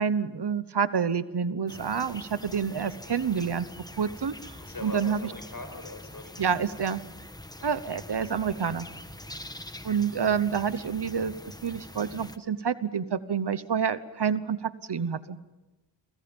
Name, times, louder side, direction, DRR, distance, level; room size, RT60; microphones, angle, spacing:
voice 1, 0.0-3.7 4.0-4.3 4.8-5.2 6.4-7.0 7.6-8.9 9.8-11.3 11.6-15.4, right 6 dB, 70° right, 14 dB, 1.1 m, -28 dB
sound 1, 1.7-12.4, left 1 dB, 10° left, 1.1 m, -44 dB
voice 2, 4.6-6.6 7.5-7.8 9.2-9.5, left 2 dB, 50° left, 7 dB, 5.1 m, -42 dB
29.5 x 24.5 x 5.4 m, 1.1 s
wide cardioid pair, 85°, 43 cm